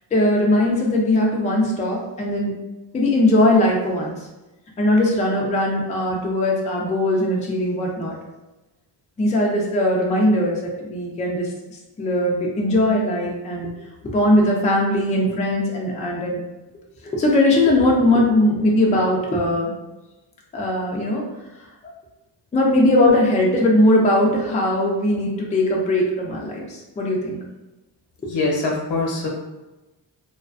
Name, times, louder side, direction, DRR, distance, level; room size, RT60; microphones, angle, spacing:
voice 1, 0.1-2.5 2.9-4.1 4.8-8.2 9.2-11.5 12.0-13.7 14.1-16.4 17.0-19.7 20.5-21.2 22.5-27.4, left 1 dB, 20° left, -2 dB, 0.3 m, -19 dB
voice 2, 28.3-29.3, left 3 dB, 80° left, -1 dB, 0.8 m, -23 dB
2.4 x 2.2 x 2.3 m, 1.1 s
wide cardioid pair, 120°, 44 cm